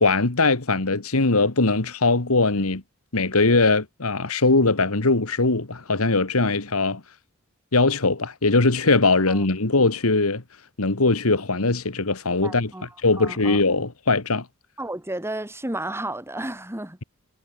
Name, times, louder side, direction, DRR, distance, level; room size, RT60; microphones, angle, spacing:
voice 1, 0.0-2.8 3.1-7.0 7.7-10.4 10.8-12.7 13.0-14.5, left 3 dB, 70° left, 1.8 m, -21 dB
voice 2, 12.4-13.6 14.8-17.0, right 1 dB, 10° right, 2.1 m, -32 dB
head